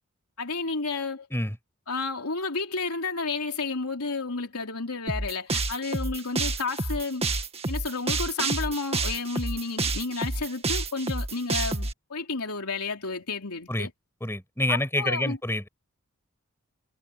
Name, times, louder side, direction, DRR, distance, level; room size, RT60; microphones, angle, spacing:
voice 1, 0.4-1.3 1.9-7.2 7.7-13.9 14.7-15.4, left 4 dB, 80° left, 3.3 m, -31 dB
sound 1, 5.1-11.9, right 3 dB, 30° right, 2.0 m, -29 dB
voice 2, 14.2-15.7, left 1 dB, 10° left, 6.5 m, -27 dB
head